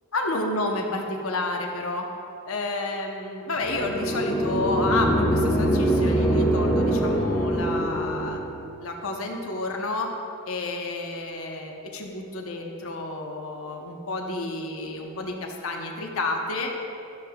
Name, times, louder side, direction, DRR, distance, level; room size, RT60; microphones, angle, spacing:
voice 1, 0.1-2.1 2.5-8.4 8.8-10.1 10.5-16.7, left 2 dB, 80° left, 2 dB, 0.9 m, -30 dB
sound 1, 3.6-8.5, right 1 dB, 10° left, 1.6 m, -23 dB
12.0 x 7.5 x 2.3 m, 2.7 s
head